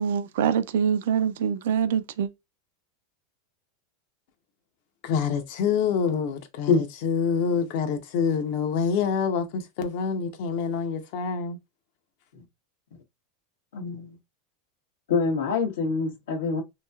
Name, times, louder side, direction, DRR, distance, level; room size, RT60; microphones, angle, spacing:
voice 1, 0.0-2.3, right 7 dB, 75° right, 0.4 m, -24 dB
voice 2, 5.0-11.6, left 6 dB, 60° left, 0.7 m, -26 dB
voice 3, 13.7-14.1 15.1-16.6, left 4 dB, 85° left, 1.1 m, -25 dB
3.0 x 2.7 x 2.3 m
supercardioid pair, 130°, 0 cm